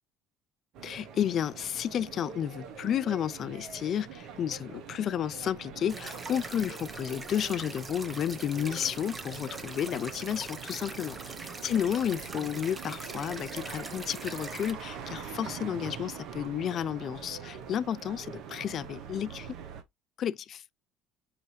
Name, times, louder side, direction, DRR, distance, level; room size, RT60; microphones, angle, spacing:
sound 1, 0.7-19.8, right 7 dB, 65° right, 0.9 m, -44 dB
voice 1, 0.8-11.1 11.6-19.6 20.2-20.6, left 9 dB, 50° left, 0.3 m, -32 dB
sound 2, 5.9-14.7, right 3 dB, 25° right, 0.9 m, -43 dB
5.5 x 2.7 x 3.1 m
hypercardioid pair, 70°, 0 cm